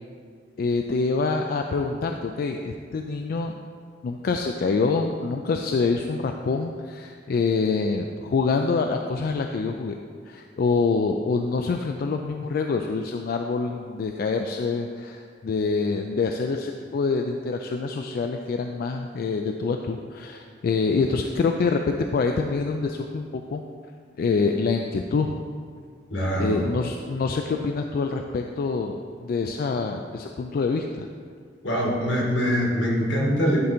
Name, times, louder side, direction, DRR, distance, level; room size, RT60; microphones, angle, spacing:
voice 1, 0.6-3.5 4.0-10.0 10.3-23.6 24.2-25.4 26.4-31.1, left 4 dB, 55° left, 4 dB, 0.3 m, -26 dB
voice 2, 26.1-26.6 31.6-33.6, equal, 80° left, -2 dB, 1.8 m, -23 dB
10.5 x 3.8 x 4.4 m, 2.1 s
head